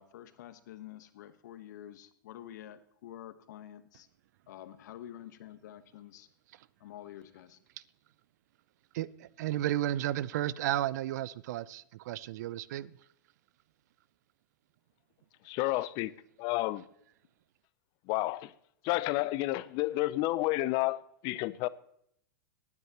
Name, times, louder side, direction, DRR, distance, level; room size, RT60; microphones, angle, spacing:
voice 1, 0.0-4.1 4.5-6.3 6.8-7.6, left 11 dB, 60° left, 1.3 m, -48 dB
voice 2, 8.9-12.9, right 13 dB, 60° right, 0.6 m, -33 dB
voice 3, 15.4-16.1 16.4-16.8 18.1-18.5 18.8-21.7, left 18 dB, 45° left, 0.6 m, -30 dB
18.5 x 9.6 x 3.0 m
hypercardioid pair, 100°, 10 cm